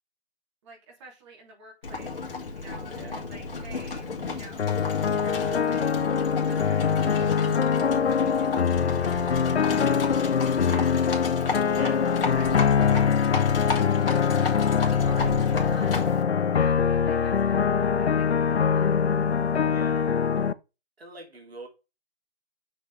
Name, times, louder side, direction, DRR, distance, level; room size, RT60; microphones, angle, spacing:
voice 1, 0.6-4.8 5.0-7.5 8.0-11.3 12.2-14.0 15.0-16.0 16.3-17.6 18.0-18.9, right 2 dB, 25° right, 3.0 m, -50 dB
Livestock farm animals working animals, 1.8-16.2, left 4 dB, 60° left, 2.6 m, -33 dB
sound 1, 4.6-20.5, left 7 dB, 80° left, 0.6 m, -23 dB
voice 2, 11.7-12.1 19.5-20.1 21.0-21.7, right 2 dB, 70° right, 2.8 m, -43 dB
6.3 x 6.1 x 3.4 m
figure-of-eight pair, 150°, 32 cm